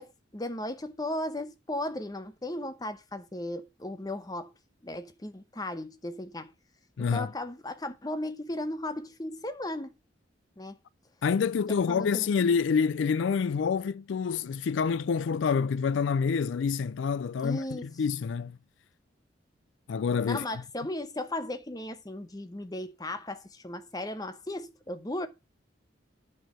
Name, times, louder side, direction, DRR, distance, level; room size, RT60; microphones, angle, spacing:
voice 1, 0.0-4.5 4.8-6.5 7.1-9.9 10.6-10.8 11.9-12.3 17.4-17.8 20.3-25.3, left 1 dB, 20° left, 0.9 m, -36 dB
voice 2, 7.0-7.3 11.2-18.6 19.9-20.4, left 6 dB, 85° left, 0.4 m, -27 dB
9.2 x 4.7 x 5.9 m
head